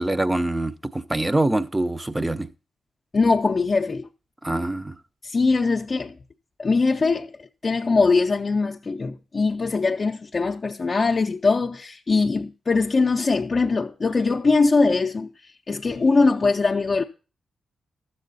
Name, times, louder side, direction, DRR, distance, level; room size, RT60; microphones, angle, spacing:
voice 1, 0.0-2.5 4.4-4.9, right 1 dB, 15° right, 0.6 m, -24 dB
voice 2, 3.1-4.1 5.2-6.2 6.6-17.0, left 4 dB, 40° left, 0.6 m, -22 dB
12.5 x 7.6 x 4.0 m
cardioid pair, 90°, 0 cm